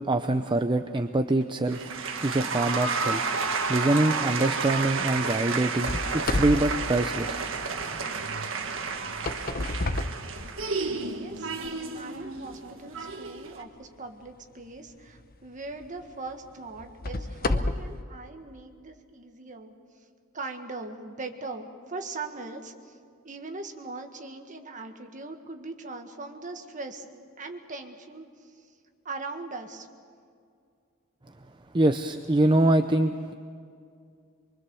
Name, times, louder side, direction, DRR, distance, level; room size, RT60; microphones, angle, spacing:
voice 1, 0.0-7.5 31.7-33.3, right 2 dB, 20° right, 7 dB, 0.6 m, -25 dB
sound 1, 1.7-13.6, right 4 dB, 65° right, 1.7 m, -31 dB
sound 2, 5.8-7.8 9.0-10.9 11.6-11.7 12.4-12.5 15.1-15.3 15.8-15.9 16.8-18.0, left 2 dB, 45° left, 0.9 m, -30 dB
voice 2, 11.1-19.7 20.3-23.0 23.2-27.0 27.4-28.7 29.0-29.9 32.6-32.8, right 3 dB, 40° right, 5 dB, 1.7 m, -40 dB
24.5 x 23.5 x 7.0 m, 2.3 s
head